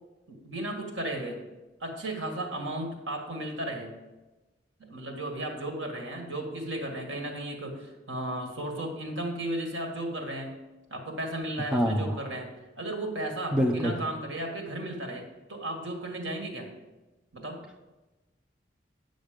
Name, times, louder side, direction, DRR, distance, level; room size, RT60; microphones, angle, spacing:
voice 1, 0.3-1.4 1.8-3.9 4.8-10.5 10.9-12.5 12.8-16.7 17.3-17.6, right 1 dB, 80° right, 2 dB, 1.8 m, -35 dB
voice 2, 11.7-12.2 13.5-14.0, equal, 5° right, -1 dB, 0.8 m, -25 dB
9.8 x 6.4 x 5.1 m, 1.1 s
head